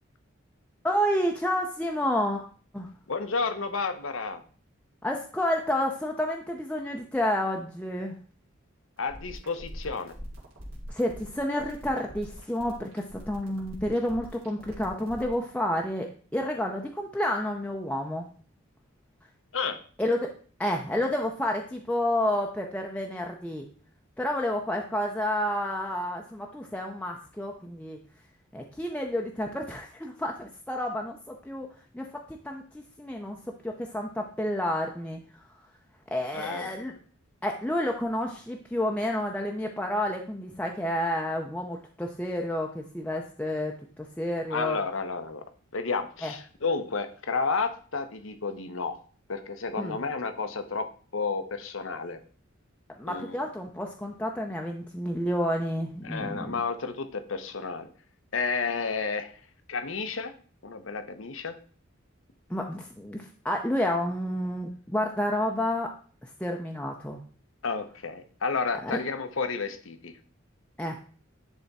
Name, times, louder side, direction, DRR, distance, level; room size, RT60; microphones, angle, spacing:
voice 1, 0.8-2.4 2.7-2.9 5.0-8.2 10.9-18.3 20.0-20.3 20.6-23.7 24.2-28.0 28.5-31.7 31.9-33.4 33.6-35.2 36.1-36.9 37.4-43.8 44.2-44.8 46.2-46.3 49.8-50.0 53.0-56.5 62.5-66.0 66.2-67.2 68.9-69.0 70.8-71.1, left 1 dB, 5° left, 1 dB, 0.6 m, -30 dB
voice 2, 3.1-4.4 9.0-10.2 19.5-19.8 36.3-36.8 44.5-45.4 45.7-49.0 49.3-52.2 53.1-53.4 56.0-57.9 58.3-59.3 59.7-60.3 60.6-61.5 67.6-70.1, left 4 dB, 75° left, 9 dB, 0.9 m, -31 dB
sound 1, 9.0-15.3, equal, 85° right, 2.6 m, -43 dB
10.5 x 3.5 x 4.1 m, 0.42 s
head